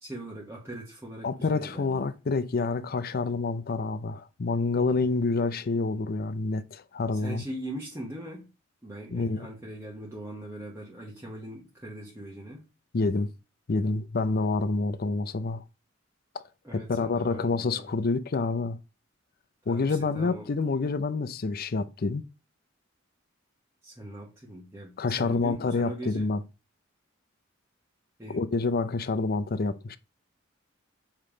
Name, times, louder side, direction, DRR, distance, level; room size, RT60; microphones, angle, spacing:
voice 1, 0.0-2.0 7.1-8.5 8.8-12.6 16.6-17.9 19.7-20.5 23.8-26.3 28.2-28.5, right 1 dB, 15° right, 1.2 m, -41 dB
voice 2, 1.2-7.4 9.1-9.5 12.9-13.3 13.7-15.6 16.7-18.8 19.7-22.2 25.0-26.4 28.3-30.0, left 3 dB, 50° left, 0.5 m, -28 dB
7.3 x 3.3 x 5.0 m
head